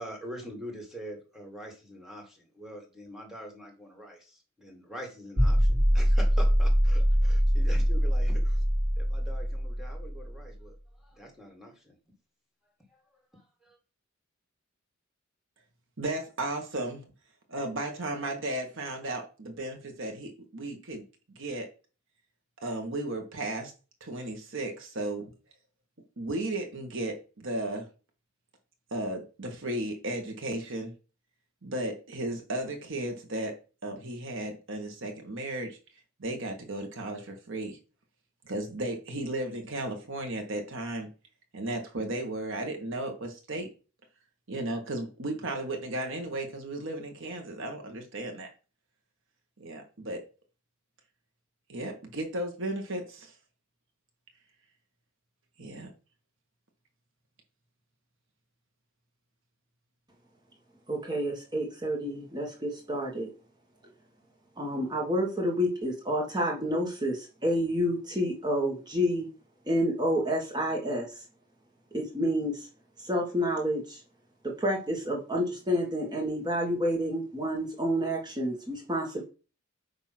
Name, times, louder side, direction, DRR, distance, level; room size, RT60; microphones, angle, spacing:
voice 1, 0.0-8.6 9.0-10.8 11.0-12.0 13.3-13.8, equal, ahead, 1 dB, 2.2 m, -44 dB
sound 1, 5.4-10.4, equal, 40° right, 1.9 m, -24 dB
voice 2, 16.0-17.0 17.5-21.0 21.3-21.7 22.6-23.7 24.0-25.3 26.2-27.9 28.9-30.9 31.6-33.5 33.8-35.8 36.2-37.8 38.4-41.1 41.5-43.7 44.5-48.5 49.6-50.2 51.7-53.3 55.6-55.9, right 1 dB, 65° right, 3 dB, 1.5 m, -34 dB
voice 3, 60.9-63.3 64.6-69.3 69.7-71.1 71.9-72.6 73.0-74.0 74.4-79.2, equal, 20° right, -1 dB, 1.5 m, -29 dB
9.0 x 3.0 x 6.0 m, 0.34 s
head